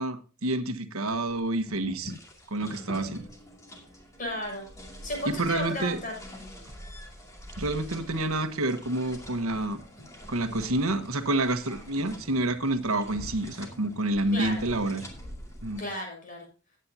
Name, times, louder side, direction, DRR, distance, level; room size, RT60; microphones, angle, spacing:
voice 1, 0.0-2.1 2.5-3.2 5.3-6.0 7.6-9.8 10.3-15.1 15.6-15.8, right 2 dB, 85° right, 1.3 m, -28 dB
sound 1, 1.1-15.9, left 1 dB, 15° left, 2.4 m, -45 dB
voice 2, 4.2-4.7 5.0-6.1 14.3-14.6 15.8-16.5, left 1 dB, 40° left, 7.0 m, -34 dB
17.0 x 9.0 x 2.8 m
head